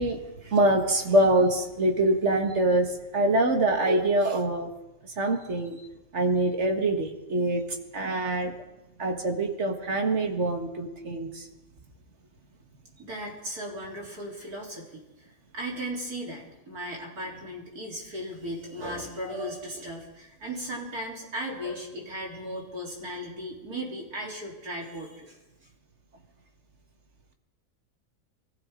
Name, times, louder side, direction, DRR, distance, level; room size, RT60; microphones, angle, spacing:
voice 1, 0.0-4.7 5.2-5.8 6.1-7.6 7.9-8.5 9.0-11.5, right 1 dB, 50° right, 4 dB, 1.9 m, -24 dB
voice 2, 13.0-25.4, equal, 80° right, -3 dB, 4.2 m, -36 dB
24.5 x 15.0 x 3.8 m, 0.99 s
omnidirectional pair, 1.6 m